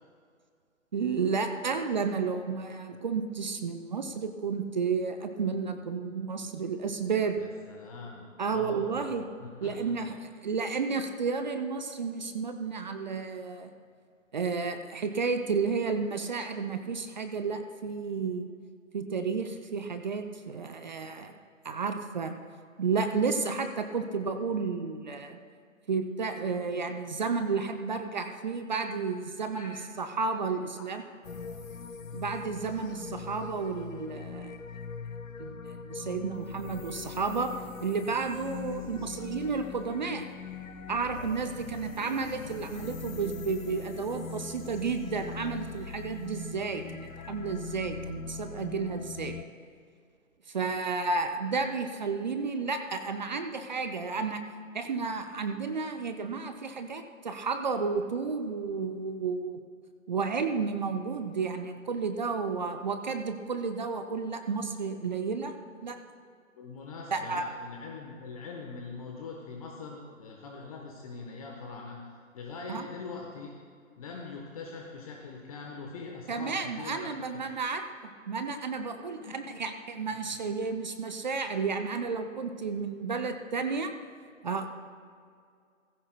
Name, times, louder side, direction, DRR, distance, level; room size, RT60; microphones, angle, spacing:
voice 1, 0.9-7.4 8.4-9.3 9.6-10.1 10.4-13.7 14.3-18.5 18.9-21.3 21.6-22.4 22.8-25.4 25.9-31.0 32.1-34.5 35.4-37.5 37.8-40.3 40.9-49.4 50.5-54.4 54.7-59.6 60.1-65.5 65.8-66.0 67.1-67.5 72.7-72.9 76.3-83.9 84.4-84.7, right 5 dB, 35° right, 7 dB, 0.6 m, -32 dB
voice 2, 7.3-10.2 29.5-29.7 30.2-30.3 30.8-30.9 32.7-32.9 38.4-38.6 39.0-39.3 66.5-72.0 72.3-73.5 74.0-77.1 79.0-79.4, left 4 dB, 25° left, 0 dB, 1.1 m, -43 dB
sound 1, 31.2-49.4, left 5 dB, 80° left, 0.8 m, -41 dB
17.0 x 15.5 x 2.2 m, 2.2 s
figure-of-eight pair, 135°, 40 cm